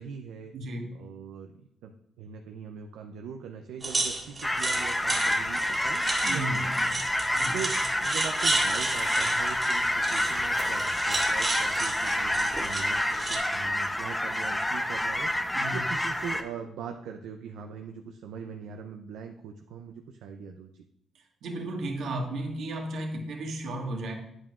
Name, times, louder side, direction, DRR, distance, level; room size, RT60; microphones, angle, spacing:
voice 1, 0.0-0.5 0.9-1.5 1.8-6.7 7.5-7.7 8.0-15.3 15.7-20.8, right 7 dB, 85° right, 4 dB, 0.5 m, -41 dB
voice 2, 0.5-0.9 6.2-7.0 7.3-7.6 15.5-15.8 21.1-24.1, right 1 dB, 70° right, 1 dB, 1.6 m, -34 dB
sound 1, 3.8-13.4, right 3 dB, 30° right, 1.8 m, -33 dB
sound 2, 4.4-16.4, left 1 dB, 10° left, 0.7 m, -28 dB
8.9 x 8.7 x 2.4 m, 0.73 s
cardioid pair, 90°, 0 cm